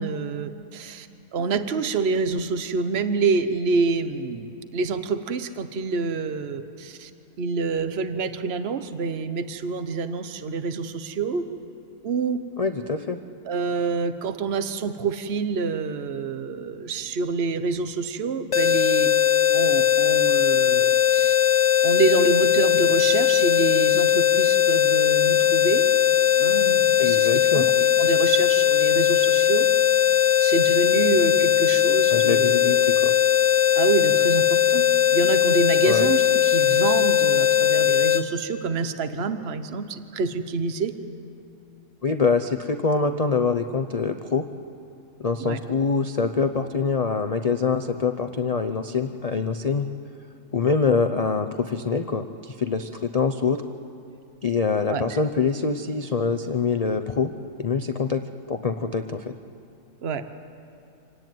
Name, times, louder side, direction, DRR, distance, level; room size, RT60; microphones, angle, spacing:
voice 1, 0.0-7.1 7.4-11.4 12.0-12.4 13.4-19.1 19.5-21.3 21.8-25.8 26.4-29.7 30.4-32.9 33.7-34.8 35.1-40.9 45.4-45.6 54.9-55.2 60.0-60.2, right 4 dB, 45° right, 10 dB, 1.2 m, -27 dB
voice 2, 12.6-13.2 27.0-27.7 32.1-33.1 35.8-36.1 42.0-44.4 45.2-49.9 50.5-53.6 54.4-57.3 57.6-59.3, left 5 dB, 35° left, 8 dB, 0.6 m, -25 dB
sound 1, 18.5-38.2, left 11 dB, 55° left, 1.4 m, -19 dB
26.5 x 18.0 x 9.3 m, 2.7 s
omnidirectional pair, 1.5 m